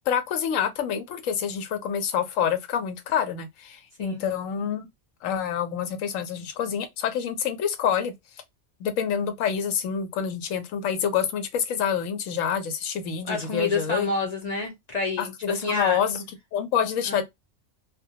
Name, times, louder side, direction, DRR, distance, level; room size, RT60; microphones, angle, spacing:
voice 1, 0.1-4.9 5.2-8.1 8.8-14.1 15.2-16.2 16.5-17.2, left 8 dB, 85° left, 1.0 m, -27 dB
voice 2, 13.2-16.0 17.1-17.2, left 3 dB, 40° left, 0.7 m, -29 dB
2.2 x 2.2 x 2.7 m
omnidirectional pair, 1.3 m